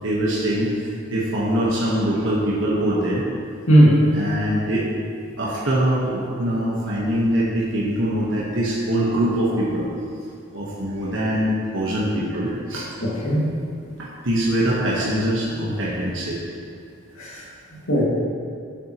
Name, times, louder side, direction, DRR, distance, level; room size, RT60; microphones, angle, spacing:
voice 1, 0.0-3.3 4.1-4.9 5.4-9.9 10.5-12.9 14.0-16.4, right 1 dB, 65° right, -6 dB, 1.2 m, -23 dB
voice 2, 3.7-4.0 13.0-13.5 17.2-17.4 17.7-18.0, right 1 dB, 90° left, -5 dB, 2.1 m, -17 dB
11.0 x 7.3 x 3.0 m, 2.4 s
head